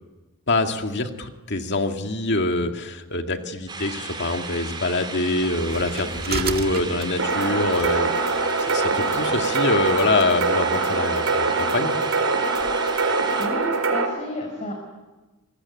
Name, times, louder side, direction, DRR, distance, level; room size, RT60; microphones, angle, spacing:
voice 1, 0.5-8.4 8.7-11.9, left 2 dB, 55° left, 5 dB, 2.2 m, -25 dB
sound 1, 3.7-13.5, right 3 dB, 20° right, 3.9 m, -35 dB
sound 2, 5.4-10.3, right 4 dB, 45° right, 1.9 m, -35 dB
sound 3, 7.2-14.1, right 3 dB, 70° right, 4.4 m, -23 dB
voice 2, 12.8-13.1 13.4-14.7, left 1 dB, 35° left, 2 dB, 4.6 m, -32 dB
25.5 x 22.0 x 9.9 m, 1.2 s
head